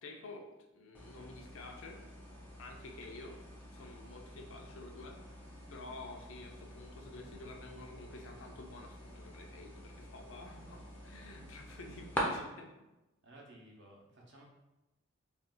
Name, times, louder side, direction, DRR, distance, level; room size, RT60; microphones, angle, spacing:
voice 1, 0.0-0.4 0.7-2.0 2.6-3.4 3.7-5.4 5.7-12.7, left 2 dB, 65° left, 2 dB, 0.5 m, -50 dB
sound 1, 0.9-12.2, equal, 10° left, 0.4 m, -47 dB
voice 2, 13.2-14.4, right 1 dB, 55° right, -2 dB, 0.7 m, -56 dB
2.4 x 2.3 x 3.7 m, 1.0 s
head